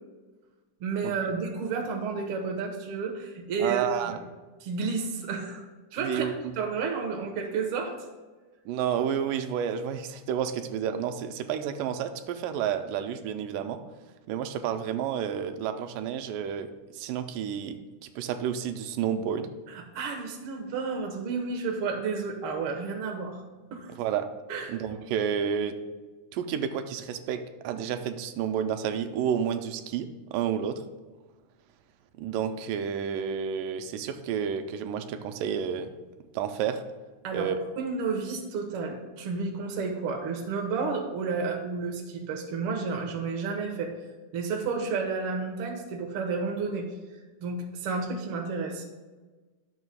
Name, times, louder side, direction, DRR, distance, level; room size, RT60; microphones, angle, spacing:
voice 1, 0.8-4.2 4.6-5.6 5.9-6.3 6.5-7.9 19.7-23.4 23.7-23.9 24.5-24.7 37.2-43.9 44.3-46.9 47.4-48.8, right 4 dB, 60° right, 1 dB, 1.5 m, -31 dB
voice 2, 3.6-4.2 6.0-6.3 8.7-13.8 14.3-17.8 18.2-19.5 23.9-24.3 24.7-25.8 26.3-30.8 32.1-35.9 36.3-36.8 37.3-37.6, right 8 dB, 90° right, 8 dB, 2.2 m, -30 dB
12.0 x 7.0 x 2.2 m, 1.3 s
omnidirectional pair, 3.7 m